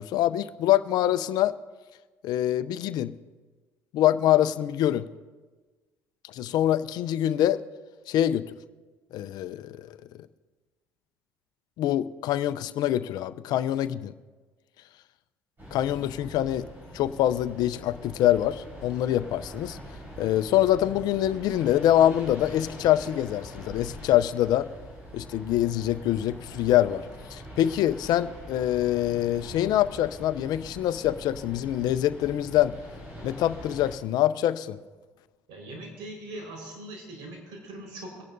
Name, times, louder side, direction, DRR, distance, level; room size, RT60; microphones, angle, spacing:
voice 1, 0.0-1.5 2.2-3.2 3.9-5.1 6.2-7.6 8.1-8.5 9.1-10.0 11.8-14.1 15.7-16.7 16.9-19.8 20.2-24.7 25.1-27.0 27.3-32.8 33.2-34.8, left 12 dB, 65° left, 13 dB, 0.5 m, -25 dB
sound 1, 15.6-34.0, equal, 30° right, 4.6 m, -44 dB
voice 2, 35.5-38.2, right 1 dB, 75° right, 0 dB, 4.6 m, -41 dB
23.5 x 10.5 x 2.6 m, 1.3 s
supercardioid pair, 70°, 7 cm